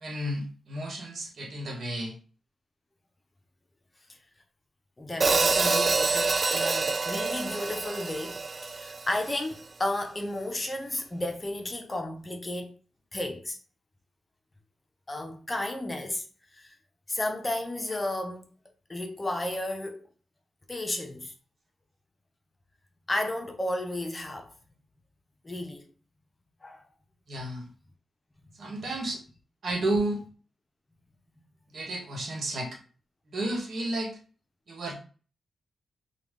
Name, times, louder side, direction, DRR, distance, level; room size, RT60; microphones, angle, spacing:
voice 1, 0.0-2.1 27.3-27.7 28.6-29.2 29.6-30.2 31.7-32.8 33.3-34.2 34.7-34.9, right 1 dB, 65° right, 1.2 m, -32 dB
voice 2, 5.0-12.8 13.1-13.6 15.1-16.3 16.5-16.8 17.1-18.5 18.9-20.0 20.7-21.3 23.1-24.5 25.4-25.9 26.6-26.8 28.4-28.9, left 1 dB, 25° left, 0.7 m, -33 dB
Hi-hat, 5.2-9.4, right 4 dB, 40° right, 0.4 m, -26 dB
3.2 x 2.3 x 3.6 m
cardioid pair, 60°, 0 cm